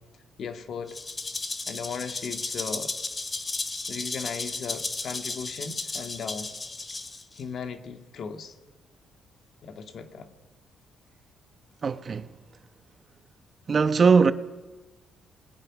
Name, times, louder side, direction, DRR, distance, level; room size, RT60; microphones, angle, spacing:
voice 1, 0.4-1.0 1.7-2.9 3.9-6.5 7.4-8.5 9.6-10.3, left 6 dB, 60° left, 2.2 m, -37 dB
Rattle (instrument), 0.9-7.4, left 3 dB, 25° left, 2.3 m, -34 dB
voice 2, 11.8-12.3 13.7-14.3, right 5 dB, 40° right, 1.1 m, -20 dB
28.0 x 20.5 x 6.3 m
cardioid pair, 90°, 0 cm